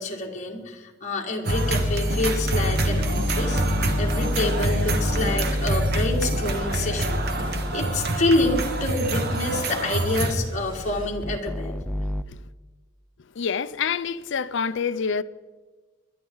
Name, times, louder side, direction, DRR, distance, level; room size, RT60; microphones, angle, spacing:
voice 1, 0.0-11.8, left 2 dB, 35° left, 2.0 m, -27 dB
sound 1, 1.4-10.4, right 2 dB, 50° right, 1.4 m, -27 dB
sound 2, 1.5-7.8 8.4-8.9 11.2-12.2, equal, 5° left, 0.5 m, -27 dB
sound 3, 2.8-5.4 7.4-11.1, left 2 dB, 25° right, 3.7 m, -37 dB
voice 2, 13.4-15.2, left 6 dB, 60° left, 0.5 m, -27 dB
21.5 x 10.5 x 3.9 m
head